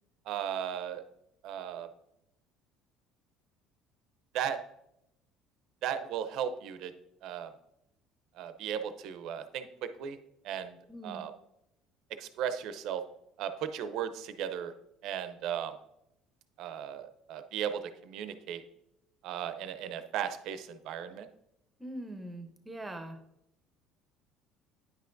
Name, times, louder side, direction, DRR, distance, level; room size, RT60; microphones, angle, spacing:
voice 1, 0.3-1.0 1.4-1.9 4.3-4.6 5.8-6.9 7.2-7.5 8.4-9.7 10.0-10.2 10.4-10.8 11.0-11.3 12.2-13.0 13.4-14.7 15.0-15.7 16.6-18.6 19.2-21.3, right 9 dB, 65° right, 10 dB, 0.6 m, -36 dB
voice 2, 10.9-11.2 21.8-23.2, right 1 dB, 10° right, 7 dB, 0.8 m, -42 dB
9.6 x 5.7 x 2.5 m, 0.81 s
cardioid pair, 125°, 0 cm